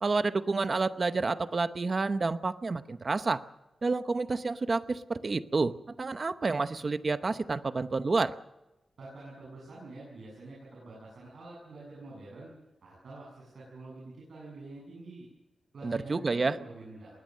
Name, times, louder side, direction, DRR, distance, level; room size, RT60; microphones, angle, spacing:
voice 1, 0.0-3.4 3.8-5.7 6.0-8.3 15.8-16.6, right 3 dB, 35° right, 12 dB, 0.9 m, -29 dB
voice 2, 9.0-12.5 12.8-15.3 15.7-17.2, right 2 dB, 65° right, -5 dB, 7.9 m, -47 dB
21.5 x 19.5 x 6.5 m, 1.0 s
wide cardioid pair, 155°, 0 cm